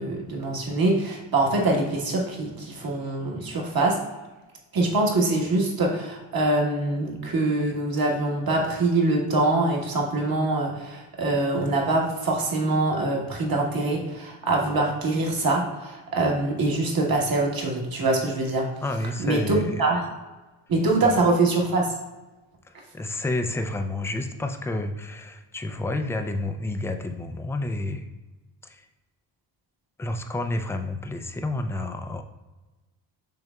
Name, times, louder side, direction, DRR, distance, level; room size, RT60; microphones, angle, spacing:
voice 1, 0.0-4.0 4.7-18.7 19.2-20.0 20.7-21.9, right 2 dB, 45° right, 0 dB, 1.4 m, -24 dB
voice 2, 18.8-19.8 21.0-21.1 22.6-28.1 28.6-28.9 30.0-32.2, left 2 dB, 5° left, 6 dB, 0.3 m, -30 dB
6.6 x 3.4 x 2.3 m, 1.1 s
supercardioid pair, 65°, 48 cm